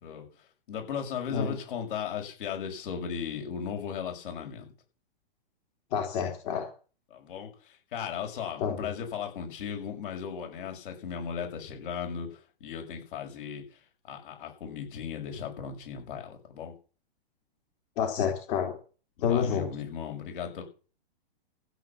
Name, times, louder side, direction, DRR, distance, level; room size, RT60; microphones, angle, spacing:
voice 1, 0.7-4.7 7.1-13.8 14.0-16.7 19.2-20.6, left 7 dB, 60° left, 3 dB, 6.7 m, -36 dB
voice 2, 5.9-6.7 8.6-8.9 18.0-18.7 19.2-19.6, left 7 dB, 40° left, 0 dB, 3.7 m, -28 dB
15.0 x 8.3 x 7.4 m, 0.37 s
hypercardioid pair, 145°, 30 cm